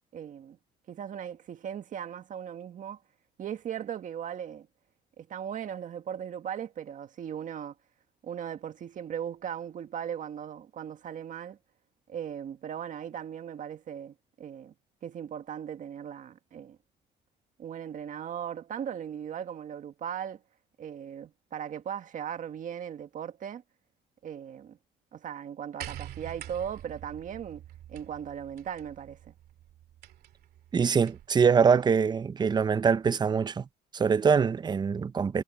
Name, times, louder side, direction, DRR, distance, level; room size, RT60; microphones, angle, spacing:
voice 1, 0.1-0.6 0.9-3.0 3.4-4.7 5.2-7.8 8.2-11.6 12.1-14.7 15.0-16.8 17.6-20.4 20.8-23.6 24.2-24.8 25.1-27.6 27.9-29.3, right 9 dB, 50° right, 1.8 m, -38 dB
sound 1, 25.8-31.4 32.5-32.6, right 12 dB, 70° right, 2.5 m, -46 dB
voice 2, 30.7-33.7 33.9-35.4, right 6 dB, 25° right, 0.6 m, -24 dB
cardioid pair, 110°, 17 cm